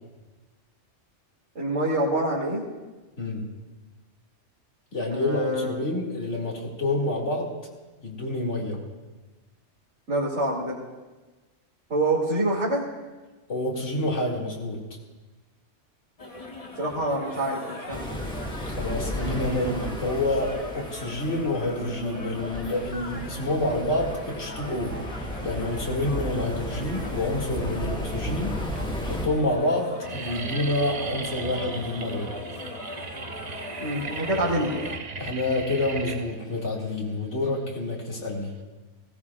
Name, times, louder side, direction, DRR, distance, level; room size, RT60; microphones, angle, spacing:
voice 1, 1.5-2.6 5.1-5.7 10.1-10.8 11.9-12.9 16.8-18.0 33.8-34.8, right 1 dB, 80° right, -8 dB, 2.7 m, -26 dB
voice 2, 3.2-3.5 4.9-7.5 8.0-8.8 13.5-14.8 18.7-28.6 29.0-32.3 35.2-38.5, left 1 dB, 80° left, -3 dB, 2.5 m, -28 dB
sound 1, 16.2-35.0, left 2 dB, 30° left, 1.1 m, -39 dB
sound 2, 17.9-29.3, equal, 5° left, 2.0 m, -34 dB
sound 3, 28.8-28.9 29.0-29.4 29.7-38.6, right 4 dB, 40° right, 0.7 m, -38 dB
20.0 x 17.0 x 2.4 m, 1.2 s
omnidirectional pair, 1.2 m